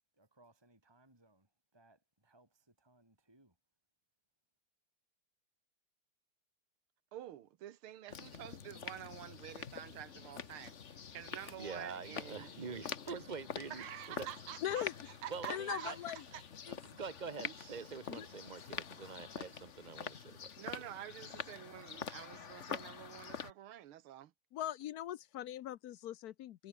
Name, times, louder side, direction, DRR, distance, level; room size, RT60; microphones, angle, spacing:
voice 1, 0.2-3.5, right 2 dB, 10° right, 3.6 m, -67 dB
voice 2, 7.1-12.8 13.7-14.9 15.2-16.4 17.4-17.9 20.6-24.3, right 12 dB, 85° right, 1.9 m, -48 dB
sound 1, 8.1-23.5, left 7 dB, 40° left, 1.2 m, -46 dB
voice 3, 11.6-13.8 14.2-14.3 15.3-16.0 16.7-20.7, right 5 dB, 35° right, 0.7 m, -45 dB
voice 4, 14.6-14.9 15.5-16.2 16.6-16.8 18.1-18.3 24.5-26.7, left 12 dB, 70° left, 0.9 m, -40 dB
omnidirectional pair, 2.3 m